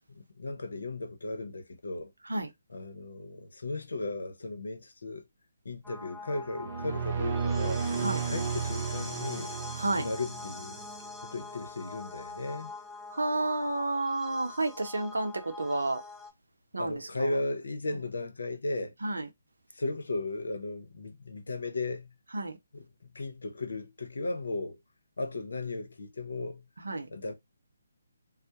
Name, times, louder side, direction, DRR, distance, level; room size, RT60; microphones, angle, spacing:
voice 1, 0.2-2.1 2.7-5.2 5.6-7.8 8.3-9.5 9.9-10.9 11.2-12.7 16.8-18.9 19.8-22.1 22.7-22.8 23.1-24.8 25.2-26.6 27.1-27.3, left 2 dB, 70° left, 0.7 m, -36 dB
sound 1, 5.8-16.3, left 3 dB, ahead, 0.7 m, -44 dB
sound 2, 6.5-10.9, right 6 dB, 40° right, 0.5 m, -33 dB
voice 2, 9.8-10.1 13.1-16.0 16.7-17.3 17.9-18.0 19.0-19.3 22.3-22.5 26.8-27.1, right 2 dB, 80° right, 0.6 m, -31 dB
2.2 x 2.0 x 2.8 m
figure-of-eight pair, 145°, 0 cm